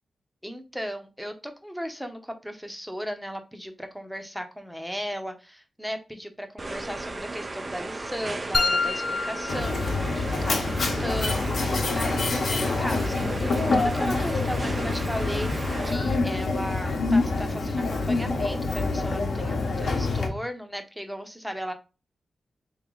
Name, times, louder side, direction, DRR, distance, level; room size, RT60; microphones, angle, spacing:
voice 1, 0.4-21.7, equal, ahead, 6 dB, 0.8 m, -36 dB
sound 1, 6.6-15.9, right 2 dB, 35° right, 0.4 m, -35 dB
sound 2, 8.5-10.6, left 3 dB, 40° left, 0.5 m, -28 dB
Mechanisms, 9.5-20.3, left 3 dB, 70° left, 0.9 m, -26 dB
3.2 x 2.8 x 3.8 m, 0.31 s
cardioid pair, 65°, 0 cm